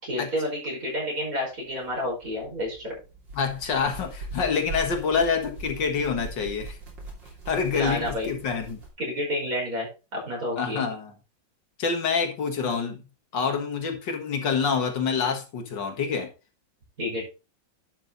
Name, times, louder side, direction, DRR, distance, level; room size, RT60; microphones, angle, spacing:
voice 1, 0.0-3.0 7.7-8.3 9.0-10.9 17.0-17.3, left 1 dB, 45° right, 5.8 m, -30 dB
sound 1, 1.7-8.9, right 2 dB, 75° right, 3.6 m, -41 dB
voice 2, 3.3-6.8 7.5-8.8 10.6-11.1 11.8-13.0 13.3-16.3, left 5 dB, 75° left, 2.3 m, -27 dB
11.0 x 6.0 x 3.9 m
omnidirectional pair, 2.0 m